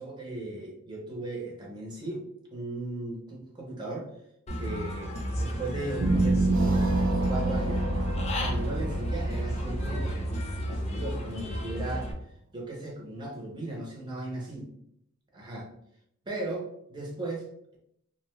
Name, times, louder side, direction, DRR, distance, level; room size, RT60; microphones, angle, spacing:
voice 1, 0.0-4.1 4.6-6.9 7.3-7.8 8.4-10.1 10.7-12.1 12.5-14.7 15.3-15.7 16.3-17.8, right 2 dB, 20° right, -2 dB, 0.5 m, -37 dB
Human voice / Bird, 4.5-12.1, equal, 30° left, 0.4 m, -33 dB
sound 1, 6.0-11.2, right 2 dB, 80° right, 0.4 m, -28 dB
2.5 x 2.0 x 3.0 m, 0.72 s
head